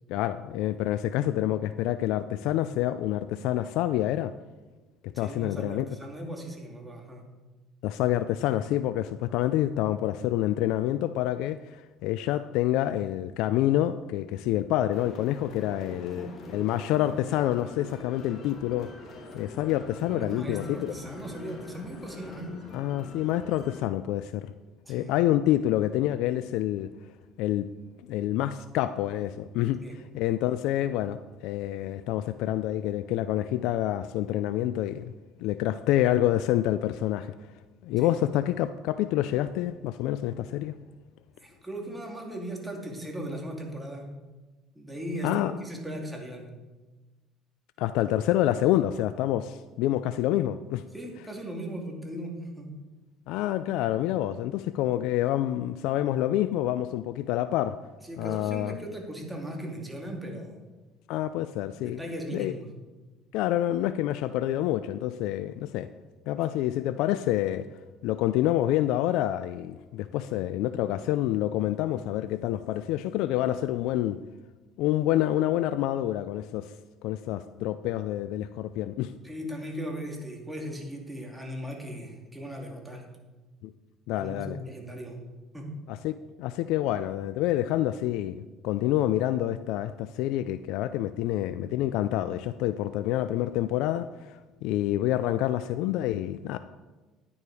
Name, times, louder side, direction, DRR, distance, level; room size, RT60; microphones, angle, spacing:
voice 1, 0.1-4.3 5.0-5.9 7.8-18.9 19.3-20.9 22.7-24.5 24.9-26.9 27.4-27.7 28.0-29.8 30.1-35.1 35.4-37.3 37.8-40.8 45.2-45.5 47.8-50.8 53.3-57.8 58.2-58.8 61.1-62.0 62.3-62.5 63.3-65.9 66.3-67.7 68.0-74.2 74.8-76.7 77.0-79.1 83.6-83.7 84.1-84.6 85.9-88.4 88.6-96.6, left 13 dB, 75° left, 12 dB, 0.4 m, -27 dB
voice 2, 5.1-7.2 16.1-16.6 20.0-22.5 24.8-25.1 29.8-30.0 38.0-38.3 41.4-44.1 44.7-46.5 50.9-52.7 58.0-60.6 61.8-62.7 79.2-83.1 84.1-85.2 85.5-85.7, right 1 dB, 5° right, 0 dB, 2.6 m, -38 dB
sound 1, 14.9-23.8, left 2 dB, 50° left, 2.7 m, -45 dB
10.5 x 9.7 x 4.8 m, 1.2 s
cardioid pair, 105°, 0 cm